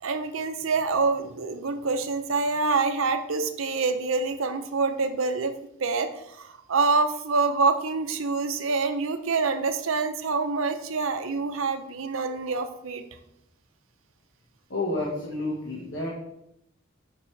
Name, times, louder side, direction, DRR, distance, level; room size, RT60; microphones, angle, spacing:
voice 1, 0.0-5.5 5.8-13.0, right 4 dB, 80° right, 7 dB, 0.6 m, -26 dB
voice 2, 14.7-16.1, left 2 dB, 60° left, -3 dB, 1.2 m, -30 dB
7.2 x 5.3 x 3.2 m, 0.78 s
head